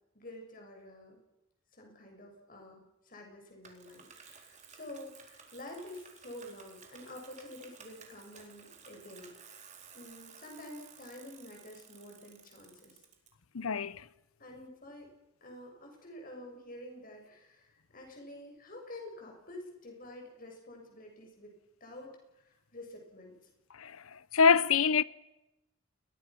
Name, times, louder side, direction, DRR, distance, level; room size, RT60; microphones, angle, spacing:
voice 1, 0.1-1.2 1.7-9.5 9.9-13.0 14.4-15.1 15.4-21.5 21.8-23.4, left 1 dB, 40° left, 6.8 m, -49 dB
Bicycle, 3.6-13.3, right 6 dB, 35° right, 4.0 m, -55 dB
voice 2, 13.5-14.0 23.8-25.0, left 5 dB, 80° left, 0.8 m, -26 dB
29.0 x 22.0 x 6.2 m
head